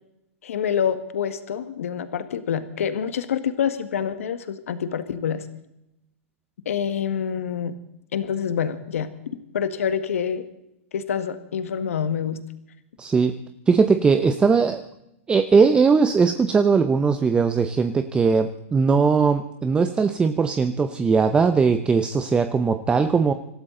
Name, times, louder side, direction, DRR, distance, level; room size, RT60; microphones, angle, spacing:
voice 1, 0.4-5.4 6.6-7.7 8.1-9.1 9.5-10.5 10.9-12.4, left 8 dB, 80° left, 11 dB, 1.7 m, -26 dB
voice 2, 13.0-13.4 13.7-14.9 15.3-23.3, right 5 dB, 15° right, 9 dB, 0.8 m, -19 dB
26.0 x 13.5 x 3.9 m, 0.83 s
hypercardioid pair, 135°, 7 cm